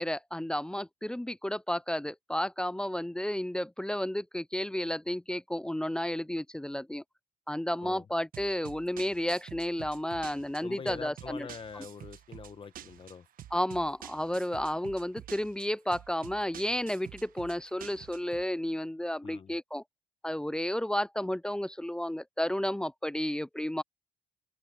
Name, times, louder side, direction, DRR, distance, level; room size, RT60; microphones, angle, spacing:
voice 1, 0.0-7.0 7.5-11.5 11.7-11.8 13.5-19.8 20.2-23.8, left 1 dB, 5° left, 0.4 m, -32 dB
sound 1, 8.3-18.4, right 11 dB, 55° right, 1.2 m, -49 dB
voice 2, 10.6-13.2 19.2-19.5, left 6 dB, 30° left, 1.2 m, -44 dB
open air
cardioid pair, 110°, 17 cm